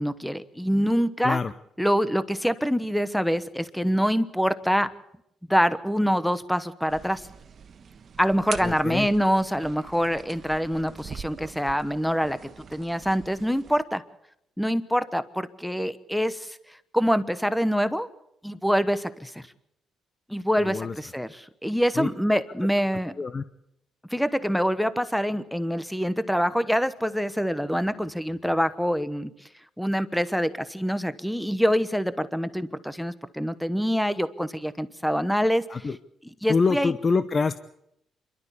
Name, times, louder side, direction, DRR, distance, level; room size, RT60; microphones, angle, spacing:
voice 1, 0.0-1.4 1.8-4.9 5.5-7.3 8.2-14.0 14.6-18.1 18.4-19.5 20.3-23.1 24.1-29.3 29.8-35.9 36.4-36.9, equal, ahead, 14 dB, 1.0 m, -25 dB
sound 1, 6.9-13.8, right 6 dB, 50° right, 1.4 m, -43 dB
voice 2, 8.6-9.1 20.6-20.9 22.0-22.1 23.2-23.4 35.7-36.0 36.5-37.6, left 4 dB, 35° left, 12 dB, 0.8 m, -25 dB
27.0 x 12.5 x 8.4 m, 0.79 s
cardioid pair, 90°, 0 cm